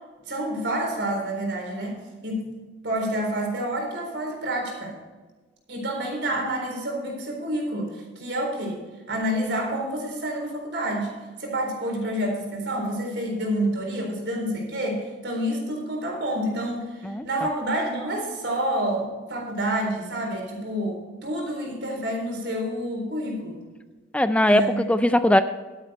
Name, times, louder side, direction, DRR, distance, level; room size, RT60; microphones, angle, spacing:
voice 1, 0.3-2.0 2.2-2.5 2.8-4.9 5.7-8.8 9.1-11.1 11.4-23.6 24.5-24.8, right 1 dB, 65° right, 1 dB, 4.0 m, -28 dB
voice 2, 24.1-25.4, left 1 dB, 5° left, 11 dB, 0.3 m, -20 dB
12.0 x 9.9 x 4.3 m, 1.3 s
head